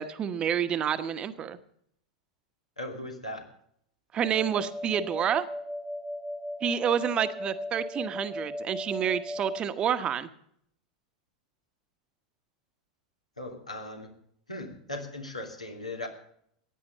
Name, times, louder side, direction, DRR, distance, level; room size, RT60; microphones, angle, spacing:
voice 1, 0.0-1.6 4.1-5.5 6.6-10.3, right 8 dB, 25° right, 11 dB, 1.0 m, -28 dB
voice 2, 2.8-3.4 13.4-14.1 14.5-16.1, left 1 dB, 85° left, 3 dB, 2.8 m, -38 dB
sound 1, 4.2-9.6, left 1 dB, 5° left, 0.8 m, -37 dB
16.0 x 9.8 x 6.6 m, 0.67 s
figure-of-eight pair, 90°, 4 cm